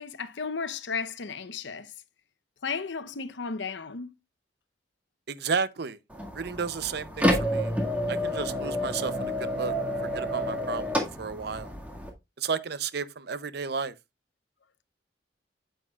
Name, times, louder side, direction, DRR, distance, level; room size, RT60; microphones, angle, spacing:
voice 1, 0.0-1.9 2.6-4.1, left 5 dB, 90° left, 0.8 m, -34 dB
voice 2, 5.3-6.0 6.3-7.7 8.1-9.7 10.1-11.7 12.4-13.9, right 5 dB, 60° right, 0.6 m, -32 dB
sound 1, 6.1-12.1, equal, 10° right, 1.8 m, -29 dB
9.2 x 7.8 x 2.4 m
head